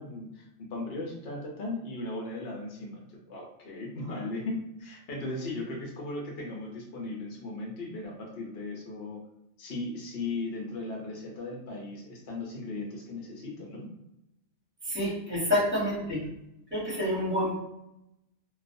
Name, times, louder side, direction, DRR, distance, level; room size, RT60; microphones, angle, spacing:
voice 1, 0.0-9.2 9.6-13.9, left 2 dB, 60° left, -1 dB, 0.8 m, -37 dB
voice 2, 14.9-16.2 16.7-17.6, left 1 dB, 10° right, -7 dB, 1.0 m, -28 dB
2.4 x 2.2 x 2.5 m, 0.87 s
omnidirectional pair, 1.2 m